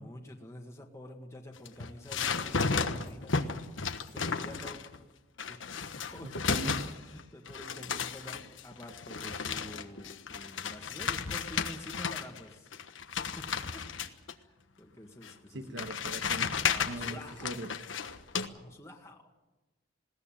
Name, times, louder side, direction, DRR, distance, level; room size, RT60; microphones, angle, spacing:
voice 1, 0.0-3.5 4.1-4.9 5.5-6.5 7.0-12.7 13.2-15.9 16.2-17.6 18.5-19.3, left 1 dB, 15° left, 2 dB, 1.8 m, -48 dB
sound 1, 1.6-5.0 5.4-7.2 7.5-12.4 12.7-14.3 15.2-15.3 15.8-18.5, left 5 dB, 80° left, 1.3 m, -34 dB
voice 2, 6.2-6.9 15.5-17.8, right 1 dB, 65° right, 8 dB, 1.4 m, -40 dB
20.5 x 18.0 x 9.1 m, 1.1 s
head